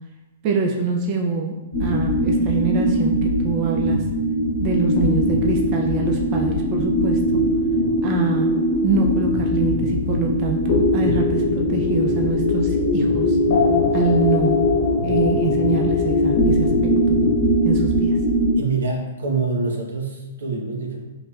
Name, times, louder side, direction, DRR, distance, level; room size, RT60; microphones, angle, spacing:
voice 1, 0.4-1.6 1.8-4.0 4.6-7.4 8.0-8.5 8.8-13.4 13.9-14.6 15.0-17.2 17.6-18.2, right 4 dB, 40° right, 1 dB, 0.5 m, -25 dB
sound 1, 1.7-18.5, left 1 dB, 65° left, 1.1 m, -20 dB
voice 2, 18.5-21.0, right 4 dB, 85° right, 0 dB, 0.9 m, -25 dB
6.7 x 2.8 x 2.3 m, 1.1 s
hypercardioid pair, 135°, 0 cm